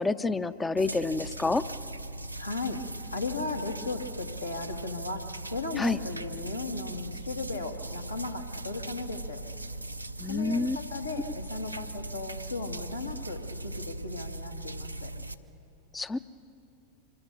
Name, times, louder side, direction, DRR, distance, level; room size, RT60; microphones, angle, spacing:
voice 1, 0.0-1.7 5.8-6.0 10.2-10.8 15.9-16.2, left 3 dB, 10° left, 14 dB, 0.5 m, -28 dB
sound 1, 0.8-15.4, right 2 dB, 85° right, 0.6 m, -39 dB
voice 2, 2.4-2.8 3.1-9.4 10.3-15.1, left 3 dB, 80° left, 2 dB, 1.9 m, -36 dB
25.5 x 21.5 x 6.8 m, 2.8 s
figure-of-eight pair, 90°, 0 cm